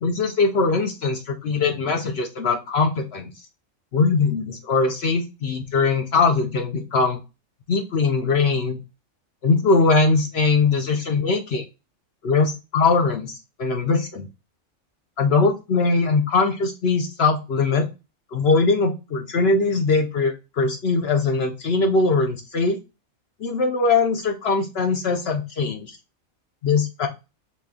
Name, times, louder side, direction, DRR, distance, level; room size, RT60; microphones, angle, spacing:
voice 1, 0.0-3.3 3.9-7.2 7.7-8.8 9.4-11.6 12.2-14.3 15.2-17.9 18.3-22.8 23.4-25.9 26.6-27.1, left 4 dB, 60° left, 4 dB, 0.8 m, -21 dB
3.1 x 2.9 x 3.5 m, 0.27 s
omnidirectional pair, 1.4 m